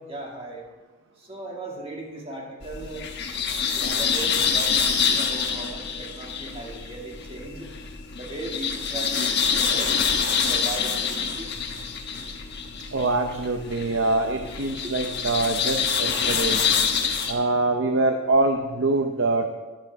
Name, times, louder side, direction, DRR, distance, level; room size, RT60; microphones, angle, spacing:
voice 1, 0.1-0.6 1.3-3.0 3.7-7.7 8.2-9.9 10.3-11.5 14.8-14.9, right 2 dB, 25° right, -2 dB, 2.2 m, -37 dB
sound 1, 2.6-17.3, left 6 dB, 50° left, 1.2 m, -26 dB
voice 2, 12.9-16.6 17.3-19.5, right 2 dB, 60° right, 5 dB, 0.7 m, -24 dB
13.0 x 11.5 x 3.5 m, 1.2 s
head